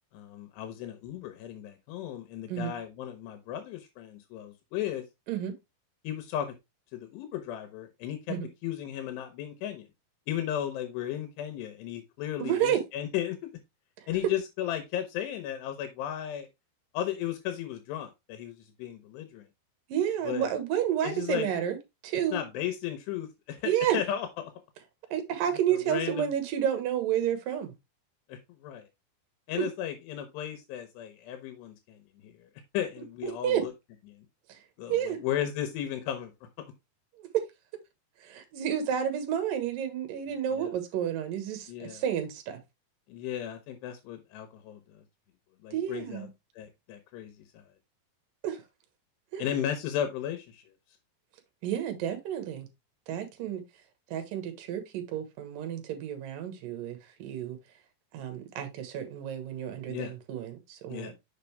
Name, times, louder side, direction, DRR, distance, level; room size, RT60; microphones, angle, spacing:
voice 1, 0.1-5.0 6.0-6.5 6.9-8.4 8.6-9.9 10.3-13.5 14.1-16.5 16.9-19.5 20.2-20.5 21.0-21.5 22.3-24.3 25.7-26.3 28.3-28.9 29.5-33.7 34.1-34.3 34.8-36.3 40.5-40.7 41.7-42.0 43.1-44.8 45.6-46.3 46.6-47.6 49.4-50.6 59.9-60.1 60.9-61.1, left 11 dB, 85° left, 3.0 m, -35 dB
voice 2, 12.4-12.8 19.9-21.8 22.0-22.4 23.6-24.0 25.1-27.7 29.5-29.7 33.2-33.6 34.5-34.6 34.9-35.2 37.2-37.4 38.2-42.6 45.7-46.3 48.4-48.6 49.3-49.6 51.6-52.7 53.1-53.6 54.1-57.6 58.1-61.1, right 10 dB, 65° right, 2.6 m, -30 dB
6.4 x 5.3 x 3.3 m
omnidirectional pair, 4.7 m